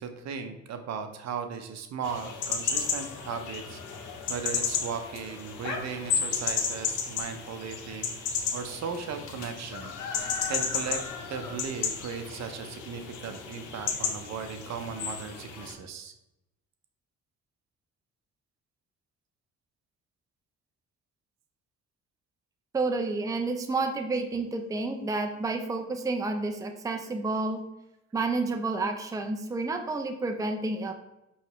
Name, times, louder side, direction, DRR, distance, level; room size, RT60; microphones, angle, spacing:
voice 1, 0.0-9.9 10.5-11.0 11.3-16.1, right 6 dB, 60° right, 7 dB, 0.6 m, -37 dB
sound 1, 2.0-15.7, left 6 dB, 80° left, 0.7 m, -33 dB
voice 2, 22.7-27.6 28.1-30.9, right 3 dB, 10° right, 5 dB, 0.4 m, -30 dB
5.5 x 3.1 x 3.0 m, 0.90 s
cardioid pair, 90°, 30 cm